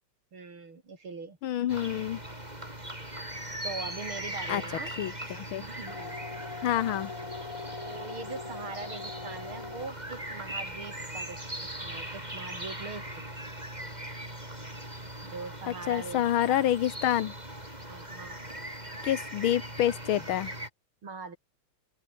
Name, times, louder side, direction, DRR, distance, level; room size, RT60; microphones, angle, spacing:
voice 1, 0.3-1.4 3.6-4.9 5.6-6.2 7.8-13.4 15.2-16.7 17.9-18.4 21.0-21.4, right 4 dB, 75° right, 4.9 m, -42 dB
voice 2, 1.4-2.2 4.5-4.6 5.0-5.6 6.6-7.1 15.7-17.3 19.0-20.5, left 11 dB, 75° left, 1.8 m, -28 dB
sound 1, 1.7-20.7, right 1 dB, 20° right, 7.1 m, -40 dB
sound 2, 5.9-9.9, left 4 dB, 40° left, 2.8 m, -41 dB
omnidirectional pair, 2.3 m